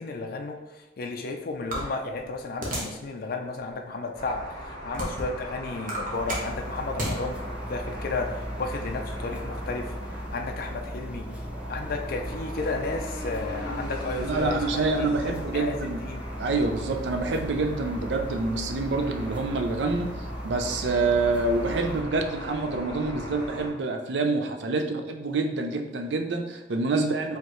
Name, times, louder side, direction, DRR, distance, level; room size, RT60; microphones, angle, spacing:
voice 1, 0.0-7.4 7.7-11.3 11.7-16.2, left 3 dB, 55° left, 3 dB, 0.4 m, -33 dB
sound 1, 1.7-3.0 3.6-3.7 4.4-5.4 5.7-7.2, right 1 dB, 50° right, 1.1 m, -32 dB
sound 2, 4.1-23.7, equal, 25° left, 1.3 m, -40 dB
sound 3, 6.1-22.0, equal, 5° right, 0.4 m, -37 dB
voice 2, 14.2-16.0 16.4-20.1 20.4-27.4, right 3 dB, 70° right, 5 dB, 0.5 m, -27 dB
4.6 x 3.3 x 3.1 m, 1.0 s
head